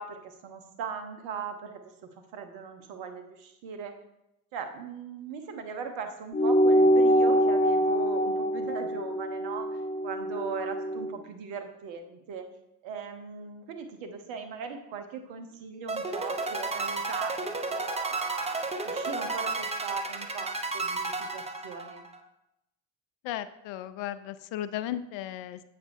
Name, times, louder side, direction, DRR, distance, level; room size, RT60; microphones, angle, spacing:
voice 1, 0.0-1.7 2.3-3.9 4.5-12.4 12.8-22.0, right 5 dB, 65° right, 7 dB, 1.0 m, -39 dB
sound 1, 6.3-11.1, equal, 20° left, 0.5 m, -24 dB
sound 2, 15.9-22.2, right 3 dB, 15° right, 0.7 m, -32 dB
voice 2, 23.2-25.6, left 12 dB, 65° left, 13 dB, 0.5 m, -35 dB
8.1 x 5.0 x 2.7 m, 0.86 s
hypercardioid pair, 55°, 48 cm